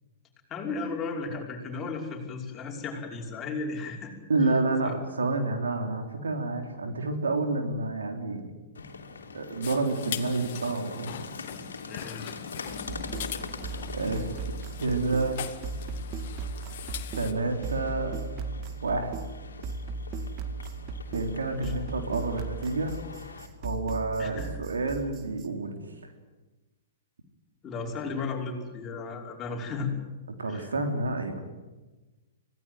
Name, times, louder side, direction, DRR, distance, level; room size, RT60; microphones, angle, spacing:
voice 1, 0.5-4.1 4.8-5.0 11.9-12.4 21.4-21.7 24.2-24.5 27.6-29.9 30.5-30.7, left 4 dB, 25° left, 0 dB, 5.4 m, -35 dB
voice 2, 4.3-8.5 9.3-11.2 13.9-14.3 14.8-15.4 17.2-18.1 18.8-19.2 21.1-22.9 23.6-25.8 30.4-31.4, right 3 dB, 80° right, 5 dB, 3.7 m, -29 dB
sound 1, 8.7-23.5, left 4 dB, 80° left, 3.2 m, -44 dB
sound 2, 9.6-17.3, left 10 dB, 55° left, 1.9 m, -41 dB
sound 3, 12.7-25.5, right 3 dB, 35° right, 2.2 m, -37 dB
25.5 x 17.5 x 9.4 m, 1.2 s
hypercardioid pair, 115°, 0 cm